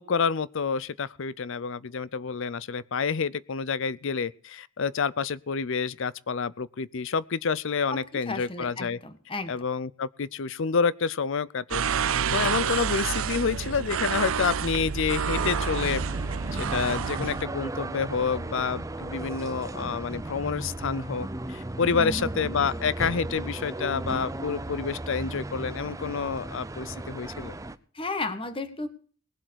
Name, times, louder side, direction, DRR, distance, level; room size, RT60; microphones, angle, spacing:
voice 1, 0.0-9.0 9.5-16.0 16.5-27.6, left 5 dB, 65° left, 0.6 m, -28 dB
voice 2, 8.3-9.5 22.0-22.3 27.9-28.9, left 2 dB, 25° left, 1.5 m, -33 dB
sound 1, 11.7-17.4, right 7 dB, 75° right, 0.6 m, -28 dB
sound 2, 15.3-27.7, right 1 dB, 15° right, 0.6 m, -35 dB
19.5 x 7.8 x 6.3 m
head